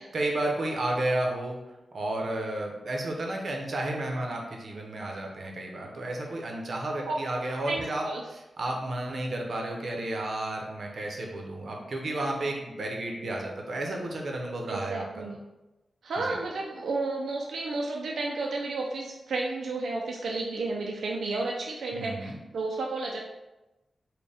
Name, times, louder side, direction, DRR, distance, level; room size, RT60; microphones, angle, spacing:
voice 1, 0.1-1.6 1.9-15.3 16.2-16.4 21.9-22.4, right 1 dB, 55° right, 1 dB, 0.7 m, -32 dB
voice 2, 7.7-8.2 14.7-15.4 16.0-23.2, right 3 dB, 85° right, -1 dB, 0.4 m, -32 dB
4.2 x 2.2 x 3.4 m, 1.0 s
wide cardioid pair, 125°, 0 cm